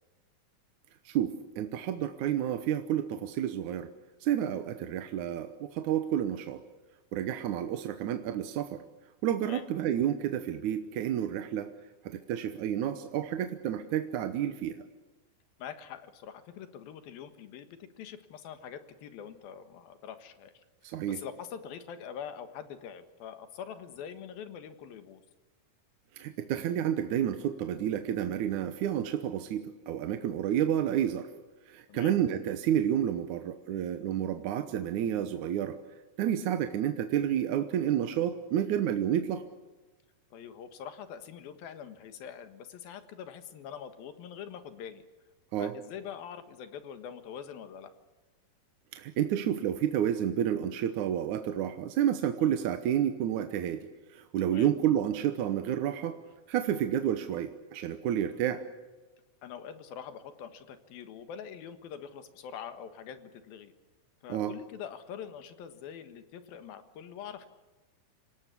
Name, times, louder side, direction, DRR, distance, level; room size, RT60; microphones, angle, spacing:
voice 1, 1.1-3.9 4.2-6.6 7.1-8.8 9.2-11.7 12.0-14.8 20.8-21.2 26.2-31.3 31.7-35.8 36.2-39.5 45.5-45.7 48.9-53.9 54.1-56.2 56.5-58.6 64.3-64.5, right 10 dB, 70° right, 8 dB, 2.2 m, -30 dB
voice 2, 15.6-20.5 20.8-25.2 31.9-32.1 40.3-45.0 45.6-47.9 52.4-52.5 54.4-54.7 59.4-63.7 64.2-67.5, left 8 dB, 90° left, 9 dB, 3.4 m, -44 dB
27.5 x 18.0 x 8.3 m, 1.2 s
omnidirectional pair, 4.1 m